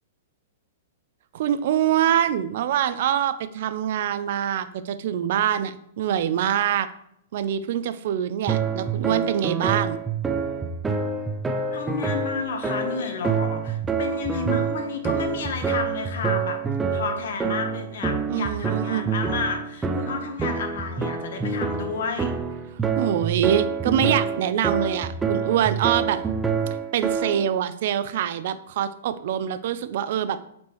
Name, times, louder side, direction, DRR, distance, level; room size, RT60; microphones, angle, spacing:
voice 1, 1.3-6.9 7.3-10.0 18.3-19.1 23.0-26.2 26.9-30.4, right 10 dB, 60° right, 12 dB, 0.5 m, -24 dB
sound 1, 8.5-27.5, right 5 dB, 10° right, 0.5 m, -27 dB
voice 2, 11.7-16.6 16.9-22.3 26.1-26.2, left 5 dB, 70° left, 6 dB, 1.2 m, -31 dB
7.2 x 4.4 x 3.2 m, 0.73 s
hypercardioid pair, 135°, 0 cm